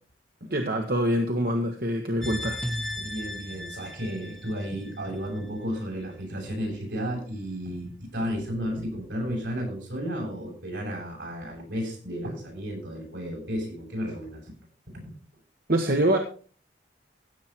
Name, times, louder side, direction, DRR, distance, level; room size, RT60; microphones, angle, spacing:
voice 1, 0.5-2.6 15.7-16.2, right 1 dB, 55° right, 3 dB, 1.4 m, -25 dB
sound 1, 2.2-5.4 5.8-5.9, left 1 dB, ahead, 1.1 m, -36 dB
voice 2, 3.0-14.4 14.9-15.1, equal, 75° right, -1 dB, 7.8 m, -33 dB
16.0 x 8.0 x 4.5 m, 0.40 s
head